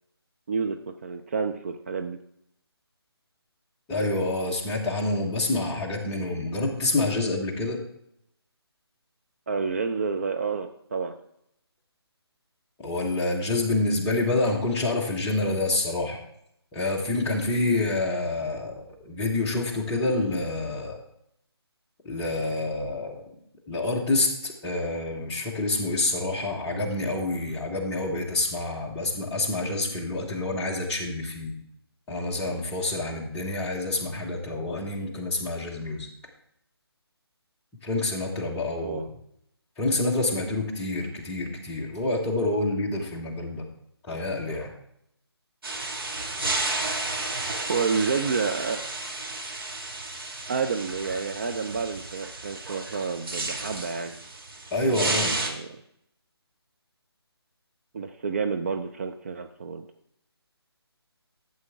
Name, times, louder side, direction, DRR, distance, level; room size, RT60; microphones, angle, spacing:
voice 1, 0.5-2.2 9.5-11.2 38.8-39.1 47.7-48.8 50.5-54.2 54.8-55.7 57.9-59.8, right 5 dB, 30° right, 6 dB, 0.5 m, -29 dB
voice 2, 3.9-7.8 12.8-16.2 16.7-21.0 22.0-23.2 23.7-31.6 32.1-36.1 37.8-39.0 39.8-43.7 44.1-44.7 54.7-55.4, left 2 dB, 10° left, -3 dB, 1.2 m, -27 dB
sound 1, 45.6-55.5, right 2 dB, 60° right, 2.0 m, -32 dB
12.5 x 7.6 x 3.6 m, 0.74 s
figure-of-eight pair, 150°, 14 cm